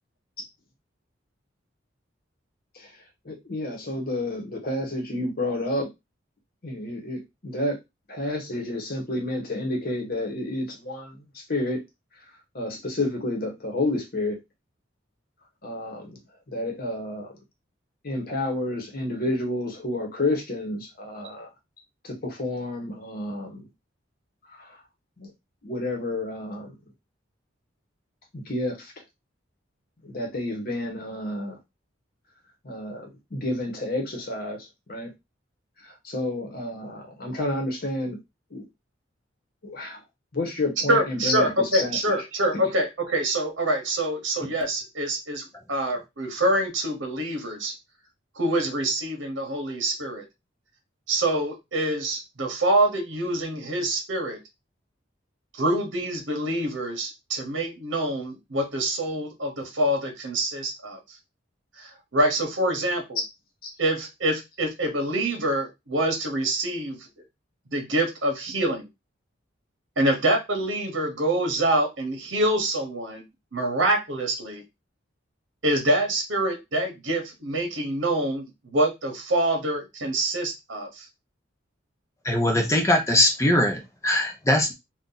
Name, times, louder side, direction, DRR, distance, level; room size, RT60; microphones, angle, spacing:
voice 1, 3.2-5.9 6.6-7.8 8.1-11.2 11.5-11.8 12.5-14.4 15.6-16.2 16.5-17.3 18.0-21.5 22.0-23.7 24.5-24.8 25.2-25.3 25.6-26.7 28.3-28.9 30.0-31.6 32.6-35.1 35.8-38.2 38.5-38.6 39.6-40.0 40.3-42.0, left 2 dB, 50° left, 1.1 m, -30 dB
voice 2, 40.9-47.7 48.3-50.2 51.1-54.4 55.5-61.0 61.7-63.2 63.8-67.1 67.7-68.9 70.0-73.2 73.5-74.6 75.6-81.1, right 1 dB, 75° right, 0.9 m, -26 dB
voice 3, 82.2-84.7, left 1 dB, 15° left, 0.6 m, -21 dB
2.7 x 2.4 x 3.8 m
head